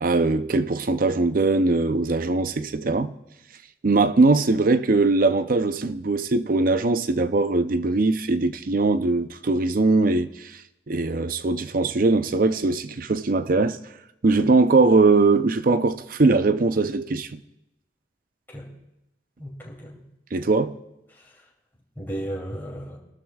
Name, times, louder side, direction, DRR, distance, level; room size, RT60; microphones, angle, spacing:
voice 1, 0.0-3.1 3.8-10.6 10.9-13.8 14.2-17.4 20.3-20.8, right 3 dB, 50° right, 0.6 m, -21 dB
voice 2, 19.4-20.0 21.1-21.3 22.0-23.0, right 1 dB, 10° left, 2.8 m, -35 dB
28.5 x 12.5 x 2.4 m
head